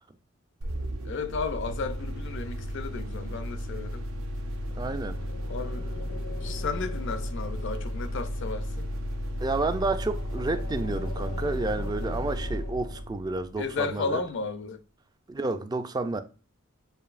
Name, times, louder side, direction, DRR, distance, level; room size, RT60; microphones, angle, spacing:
sound 1, 0.6-14.1, equal, 85° right, 0.6 m, -34 dB
voice 1, 1.0-4.0 5.5-5.9 6.4-8.9 13.6-14.8, left 4 dB, 60° left, 0.5 m, -33 dB
sound 2, 4.1-13.0, left 4 dB, 85° left, 0.8 m, -45 dB
voice 2, 4.7-5.2 9.4-14.2 15.3-16.2, right 3 dB, 20° right, 0.3 m, -30 dB
6.7 x 2.7 x 2.4 m
head